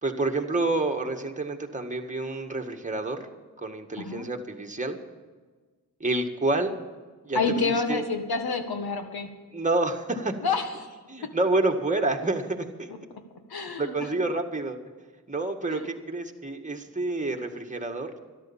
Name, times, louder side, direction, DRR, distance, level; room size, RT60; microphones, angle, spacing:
voice 1, 0.0-3.3 3.6-5.0 6.0-6.7 7.2-8.0 9.5-10.4 11.1-12.9 13.8-14.8 15.3-18.1, right 2 dB, 20° right, 3 dB, 1.8 m, -28 dB
voice 2, 7.3-9.3 10.4-10.9 13.5-13.9 15.7-15.8, left 4 dB, 80° left, 6 dB, 1.7 m, -28 dB
13.0 x 11.5 x 7.3 m, 1.4 s
cardioid pair, 65°, 37 cm